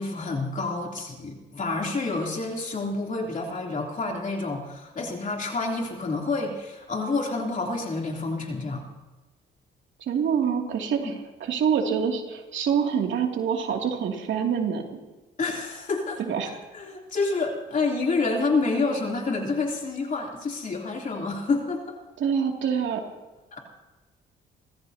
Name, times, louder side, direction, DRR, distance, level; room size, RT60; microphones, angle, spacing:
voice 1, 0.0-8.8 11.0-11.1 15.4-16.2 16.7-22.0 23.5-23.6, left 3 dB, 40° left, 0 dB, 3.3 m, -28 dB
voice 2, 10.0-15.0 16.2-16.5 22.2-23.0, right 7 dB, 70° right, 1 dB, 2.7 m, -26 dB
29.5 x 14.5 x 2.9 m, 1.2 s
cardioid pair, 90°, 20 cm